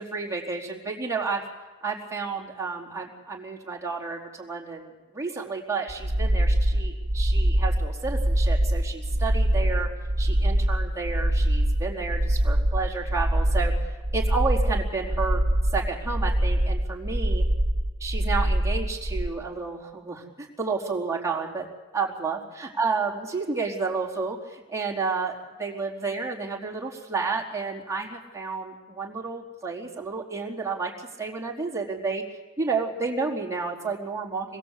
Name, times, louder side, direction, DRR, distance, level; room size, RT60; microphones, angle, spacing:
voice 1, 0.0-1.4 1.8-9.9 10.2-13.7 14.1-15.4 15.7-17.4 18.0-21.7 21.9-22.4 22.8-32.2 32.6-34.6, right 4 dB, 15° right, -2 dB, 4.1 m, -31 dB
sound 1, 5.9-19.3, right 1 dB, 45° right, 1.5 m, -24 dB
27.5 x 21.5 x 8.4 m, 1.2 s
head